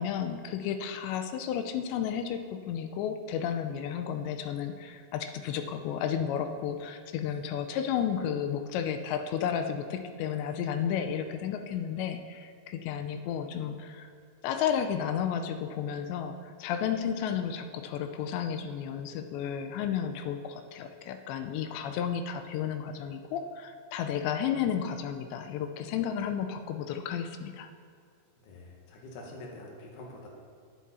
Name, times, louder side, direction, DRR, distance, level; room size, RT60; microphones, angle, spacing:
voice 1, 0.0-14.1 14.4-27.7, left 8 dB, 90° left, 7 dB, 2.9 m, -32 dB
voice 2, 28.4-30.3, left 2 dB, 55° left, -1 dB, 2.9 m, -45 dB
21.5 x 7.4 x 4.2 m, 2.3 s
omnidirectional pair, 4.9 m